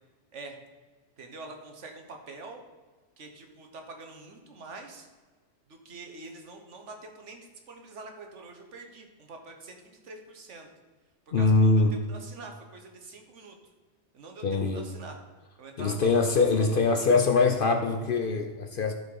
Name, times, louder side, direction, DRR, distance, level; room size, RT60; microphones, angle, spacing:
voice 1, 1.2-2.6 3.2-5.1 5.7-10.7 11.4-13.6 14.1-15.2 15.6-16.8, right 3 dB, 80° right, 4 dB, 1.5 m, -45 dB
voice 2, 11.3-12.0 14.4-14.9 15.8-18.9, left 3 dB, 55° left, 5 dB, 0.7 m, -23 dB
12.0 x 4.6 x 4.7 m, 1.4 s
omnidirectional pair, 1.2 m